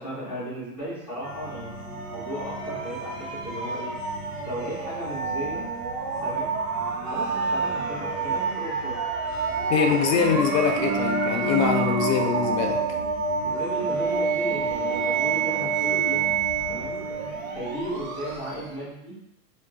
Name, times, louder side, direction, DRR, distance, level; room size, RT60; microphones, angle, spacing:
voice 1, 0.0-1.7 2.0-4.0 4.4-5.7 6.2-6.6 7.1-9.0 9.8-10.1 13.4-16.3 16.7-17.0 17.5-19.2, right 1 dB, 15° left, -18 dB, 0.3 m, -35 dB
sound 1, 1.2-18.7, right 4 dB, 55° right, 0.8 m, -28 dB
voice 2, 9.7-12.8, left 6 dB, 75° left, 3 dB, 0.6 m, -23 dB
2.3 x 2.2 x 3.7 m, 0.83 s
hypercardioid pair, 160°, 49 cm